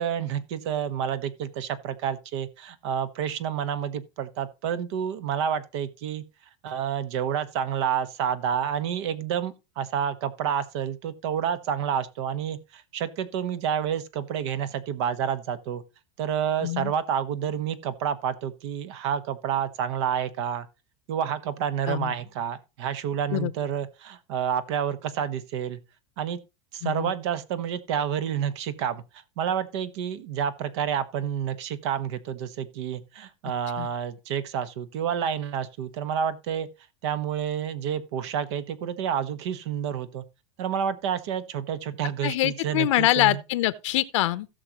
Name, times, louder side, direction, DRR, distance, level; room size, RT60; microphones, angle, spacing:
voice 1, 0.0-6.2 6.6-15.8 16.2-20.7 21.1-25.8 26.2-26.4 26.7-36.7 37.0-40.2 40.6-43.4, right 8 dB, 65° right, 1.2 m, -29 dB
voice 2, 16.6-16.9 21.9-22.1 23.3-23.5 26.8-27.1 33.8-33.9 42.2-44.5, left 16 dB, 80° left, 0.7 m, -24 dB
17.0 x 6.6 x 3.0 m
supercardioid pair, 155°, 16 cm